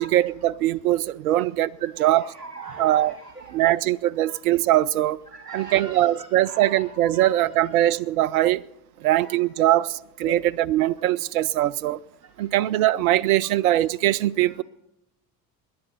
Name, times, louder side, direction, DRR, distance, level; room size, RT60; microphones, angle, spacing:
voice 1, 0.0-2.2 2.8-3.1 3.5-5.2 5.5-8.6 9.0-9.9 10.2-12.0 12.4-14.6, right 14 dB, 65° right, 0.5 m, -21 dB
voice 2, 1.8-3.9 4.2-4.4 5.3-7.8 9.0-9.8 10.2-10.5 11.0-11.1 12.4-12.5 13.4-13.6 14.4-14.6, right 4 dB, 85° right, 1.1 m, -41 dB
19.0 x 10.5 x 5.7 m
figure-of-eight pair, 65°, 47 cm